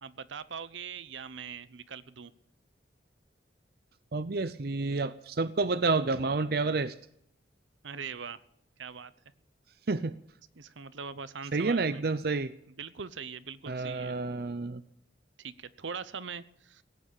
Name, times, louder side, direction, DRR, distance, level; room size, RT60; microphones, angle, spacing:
voice 1, 0.0-2.3 7.8-8.4 8.8-9.1 10.6-12.0 12.8-14.1 15.4-16.8, right 6 dB, 80° right, 15 dB, 0.8 m, -41 dB
voice 2, 4.1-6.9 9.9-10.2 11.5-12.5 13.7-14.8, right 3 dB, 55° right, 13 dB, 0.6 m, -29 dB
17.5 x 9.0 x 8.7 m, 0.73 s
head